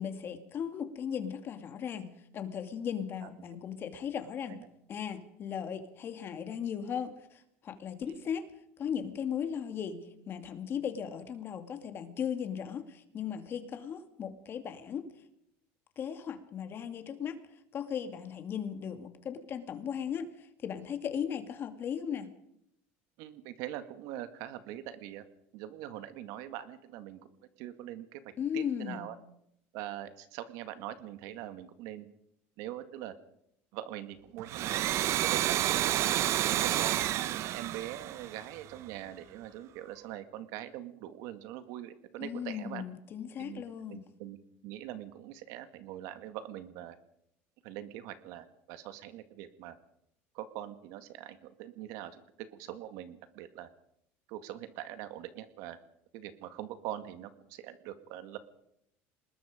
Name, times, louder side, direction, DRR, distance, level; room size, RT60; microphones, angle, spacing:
voice 1, 0.0-4.6 4.9-8.5 8.8-15.1 16.0-17.4 17.7-22.3 28.4-29.1 42.2-44.0, left 8 dB, 40° left, 8 dB, 2.5 m, -37 dB
voice 2, 23.2-25.3 25.5-27.2 27.6-28.2 28.5-29.2 29.7-32.1 32.6-33.1 33.7-34.9 35.2-36.2 36.5-42.8 43.4-43.6 43.9-44.4 44.6-47.0 47.6-49.8 50.3-53.7 54.3-55.8 56.1-58.4, right 12 dB, 70° right, 11 dB, 2.0 m, -43 dB
Domestic sounds home sounds, 34.4-38.9, right 13 dB, 50° right, 0.9 m, -30 dB
24.5 x 20.5 x 5.2 m, 0.76 s
supercardioid pair, 125°, 6 cm